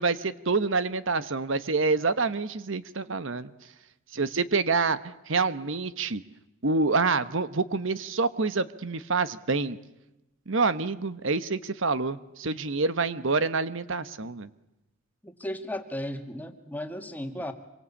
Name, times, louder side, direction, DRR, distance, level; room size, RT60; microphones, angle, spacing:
voice 1, 0.0-3.5 4.1-6.2 6.6-9.8 10.5-14.5, right 4 dB, 65° right, 14 dB, 1.0 m, -27 dB
voice 2, 15.2-17.5, left 1 dB, 10° left, 6 dB, 2.1 m, -35 dB
26.5 x 23.5 x 8.5 m, 0.93 s
head